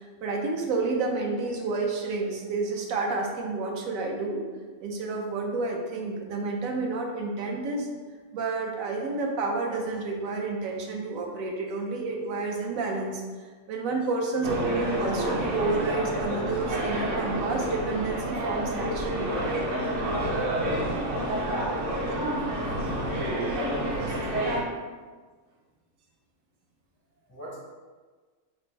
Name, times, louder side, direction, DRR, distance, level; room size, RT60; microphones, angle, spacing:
voice 1, 0.0-4.4 4.8-7.9 8.3-19.3 22.1-22.2, right 3 dB, 75° right, 1 dB, 1.0 m, -30 dB
sound 1, 14.4-24.6, right 1 dB, 50° right, 0.7 m, -29 dB
voice 2, 23.9-24.6 27.3-27.6, equal, 25° left, -6 dB, 0.4 m, -43 dB
4.2 x 2.5 x 3.2 m, 1.4 s
omnidirectional pair, 1.4 m